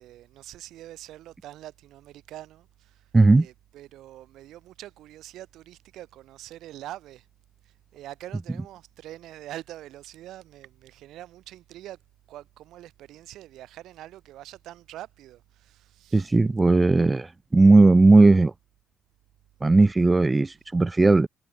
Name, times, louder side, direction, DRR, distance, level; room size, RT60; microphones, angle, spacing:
voice 1, 0.0-3.1 3.4-7.3 7.6-12.0 12.3-16.4, right 14 dB, 85° right, 1.7 m, -44 dB
voice 2, 3.1-3.5 16.1-18.5 19.6-21.3, right 3 dB, 20° right, 0.5 m, -17 dB
cardioid pair, 90°, 0 cm